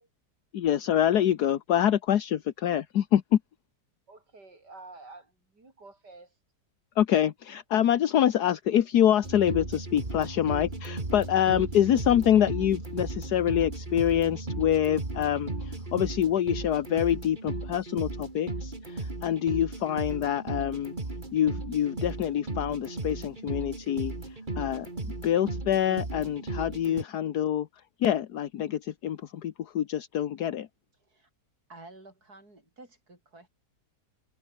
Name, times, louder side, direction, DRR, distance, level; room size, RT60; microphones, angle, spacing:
voice 1, 0.5-3.4 7.0-20.9 21.3-24.1 24.6-24.9 25.2-27.7 28.0-30.7, left 10 dB, 70° left, 1.5 m, -26 dB
voice 2, 4.1-6.3, right 3 dB, 85° right, 5.7 m, -49 dB
sound 1, 9.2-27.0, right 2 dB, 30° right, 3.1 m, -36 dB
voice 3, 31.7-33.5, right 2 dB, 65° right, 7.8 m, -51 dB
omnidirectional pair, 1.8 m